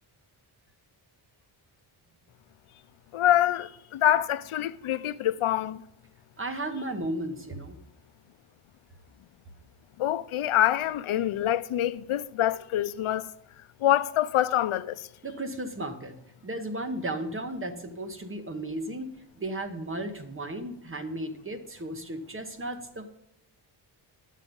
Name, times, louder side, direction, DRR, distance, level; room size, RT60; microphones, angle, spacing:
voice 1, 3.1-5.8 10.0-13.3 13.8-15.1, left 12 dB, 85° left, 0.6 m, -25 dB
voice 2, 6.4-7.8 15.2-16.2 16.4-23.1, right 1 dB, 25° right, 0.9 m, -35 dB
11.0 x 7.4 x 5.2 m
wide cardioid pair, 155°, 48 cm